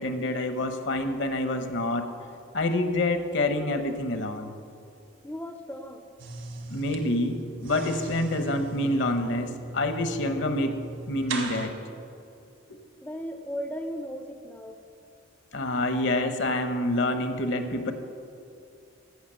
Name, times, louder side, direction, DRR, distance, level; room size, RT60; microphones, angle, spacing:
voice 1, 0.0-2.1 2.5-4.5 6.7-10.8 11.1-11.7 12.7-12.8 15.5-17.9, left 1 dB, 60° left, 7 dB, 1.0 m, -27 dB
voice 2, 5.2-6.0 13.0-14.8, equal, 10° left, 6 dB, 0.5 m, -36 dB
sound 1, 6.2-11.7, right 3 dB, 65° right, 1.5 m, -38 dB
14.5 x 6.2 x 7.5 m, 2.6 s
head